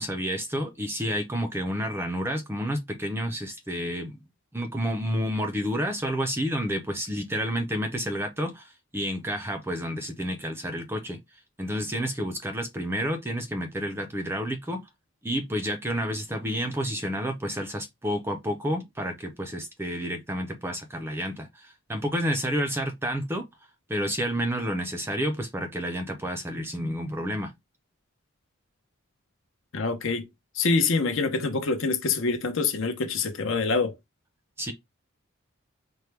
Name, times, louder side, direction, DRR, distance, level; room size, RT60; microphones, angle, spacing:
voice 1, 0.0-4.2 4.5-11.2 11.6-14.8 15.2-23.4 23.9-27.5 34.6-34.7, equal, 10° right, 0.5 m, -30 dB
voice 2, 29.7-30.3 30.5-33.9, left 4 dB, 60° left, 0.7 m, -25 dB
4.4 x 2.2 x 3.3 m
head